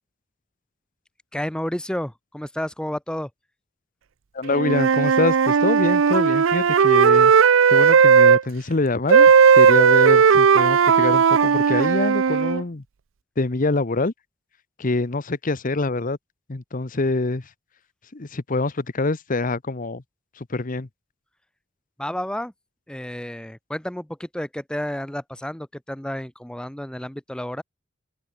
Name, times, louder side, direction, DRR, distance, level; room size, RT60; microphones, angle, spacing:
voice 1, 1.3-3.3 22.0-22.5 22.9-27.6, left 1 dB, 5° left, 0.7 m, -31 dB
voice 2, 4.3-7.3 7.7-12.8 13.4-14.1 14.8-16.2 16.5-17.5 18.1-20.0 20.4-20.9, left 3 dB, 45° left, 0.9 m, -25 dB
Wind instrument woodwind instrument, 4.5-8.4 9.1-12.6, right 6 dB, 85° right, 0.5 m, -16 dB
head